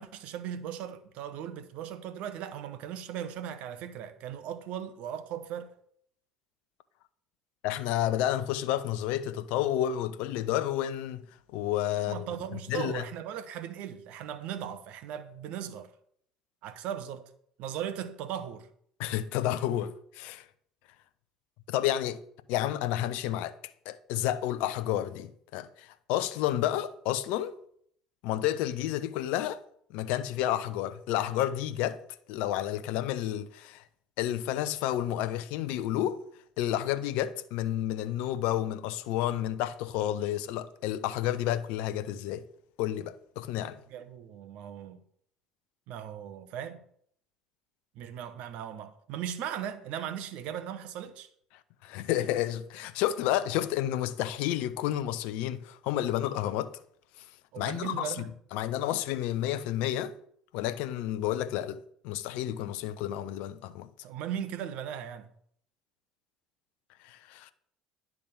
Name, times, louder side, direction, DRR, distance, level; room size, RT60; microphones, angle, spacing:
voice 1, 0.0-5.7 12.0-15.9 16.6-17.3 17.6-18.7 43.9-45.0 45.9-46.8 47.9-51.3 57.5-58.3 64.0-65.3, right 9 dB, 60° right, 0.9 m, -38 dB
voice 2, 7.6-11.3 11.5-12.3 12.7-13.0 19.0-20.4 21.7-22.2 22.5-23.6 23.9-27.5 28.2-29.6 29.9-32.0 32.3-33.8 34.2-36.2 36.6-42.5 42.8-43.8 51.8-56.7 57.6-60.1 60.5-63.9 67.0-67.5, left 12 dB, 65° left, 0.6 m, -30 dB
10.0 x 3.6 x 6.8 m
hypercardioid pair, 65°, 2 cm